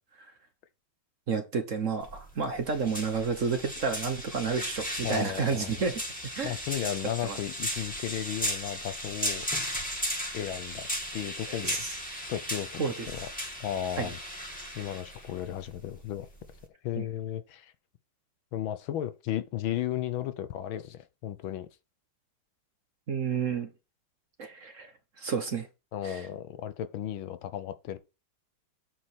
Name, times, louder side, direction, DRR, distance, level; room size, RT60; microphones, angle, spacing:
voice 1, 1.3-5.9 6.3-6.6 7.2-7.4 11.6-12.0 12.8-12.9 14.0-14.1 17.0-17.1 23.1-23.7 24.4-24.9 25.2-25.7 26.0-26.3, right 5 dB, 45° right, 1.2 m, -30 dB
sound 1, 2.0-16.7, equal, 5° left, 1.9 m, -36 dB
voice 2, 5.0-5.8 6.4-9.5 10.3-11.8 12.3-12.8 13.1-13.3 13.6-14.2 14.7-16.3 16.8-17.7 18.5-21.7 25.9-28.0, left 11 dB, 75° left, 1.6 m, -34 dB
8.5 x 4.8 x 5.9 m
omnidirectional pair, 2.2 m